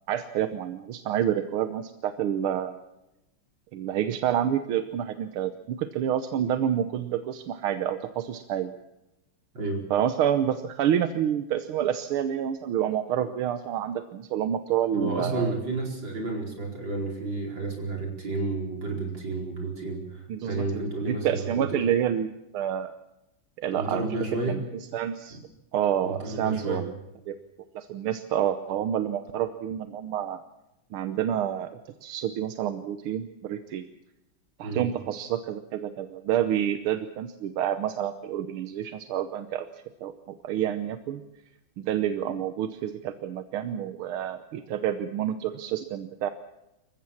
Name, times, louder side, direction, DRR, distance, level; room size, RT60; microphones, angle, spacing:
voice 1, 0.1-2.8 3.7-8.7 9.9-15.5 20.3-22.9 23.6-24.1 24.5-24.6 24.9-25.4 25.7-26.9 27.3-27.4 27.8-30.4 30.9-31.7 32.0-33.9 34.6-41.2 41.8-46.3, right 10 dB, 85° right, 10 dB, 1.8 m, -28 dB
voice 2, 14.9-21.9 23.7-24.6 26.0-26.9 34.6-34.8, right 2 dB, 60° right, 1 dB, 5.3 m, -31 dB
26.0 x 15.5 x 7.2 m, 0.94 s
omnidirectional pair, 2.3 m